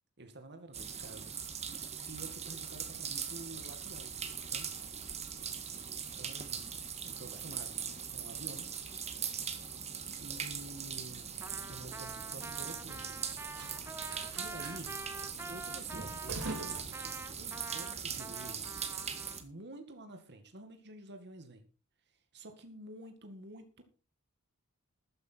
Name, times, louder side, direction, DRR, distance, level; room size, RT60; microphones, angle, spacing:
voice 1, 0.2-1.3 2.0-4.1 4.4-4.7 6.2-6.7 7.0-7.8 8.1-9.4 10.2-11.4 11.6-13.0 14.4-14.9 15.5-16.4 17.4-18.9 19.4-21.6 22.3-23.8, right 2 dB, 50° right, 6 dB, 2.1 m, -49 dB
sound 1, 0.7-19.4, right 7 dB, 30° right, 1.7 m, -41 dB
sound 2, 10.4-17.6, right 2 dB, 80° right, 4.3 m, -48 dB
Trumpet, 11.4-19.4, right 2 dB, 10° right, 0.8 m, -47 dB
13.5 x 9.9 x 4.5 m, 0.38 s
head